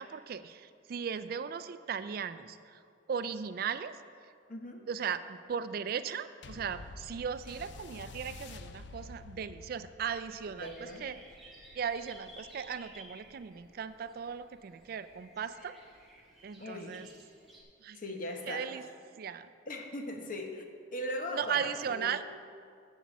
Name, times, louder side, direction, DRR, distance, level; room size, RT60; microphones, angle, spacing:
voice 1, 0.0-2.8 3.1-3.9 4.9-11.2 11.7-15.8 16.4-17.1 17.8-18.0 18.5-18.8 19.2-19.5 21.3-22.2, right 7 dB, 50° right, 12 dB, 0.3 m, -37 dB
voice 2, 4.5-4.9 10.5-11.0 16.6-17.0 17.9-18.7 19.7-20.6 20.9-22.1, left 1 dB, 45° left, 3 dB, 1.0 m, -39 dB
sound 1, 6.4-15.2 16.0-16.1, left 3 dB, 65° left, 0.4 m, -51 dB
sound 2, 10.5-17.6, right 1 dB, ahead, 1.7 m, -56 dB
7.5 x 7.1 x 7.3 m, 2.3 s
head